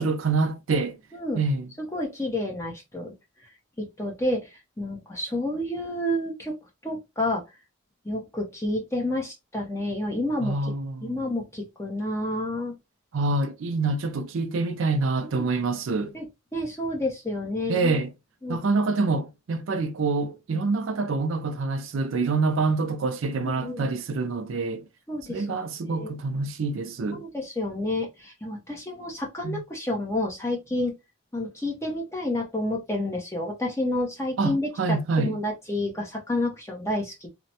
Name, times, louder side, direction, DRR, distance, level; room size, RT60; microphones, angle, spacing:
voice 1, 0.0-1.0 1.3-1.7 10.4-11.2 13.1-16.1 17.7-18.1 18.5-24.8 25.3-27.2 29.4-29.6 34.4-35.4, right 3 dB, 60° right, 0.4 m, -26 dB
voice 2, 1.1-1.4 1.8-3.1 3.8-4.5 4.8-6.5 6.8-7.4 8.0-10.5 11.0-12.7 15.2-15.5 16.1-16.3 16.5-18.0 18.4-18.6 23.4-23.9 25.1-25.4 25.8-26.2 27.1-30.9 31.3-37.3, left 1 dB, 15° left, 0.8 m, -29 dB
3.2 x 2.1 x 2.7 m
head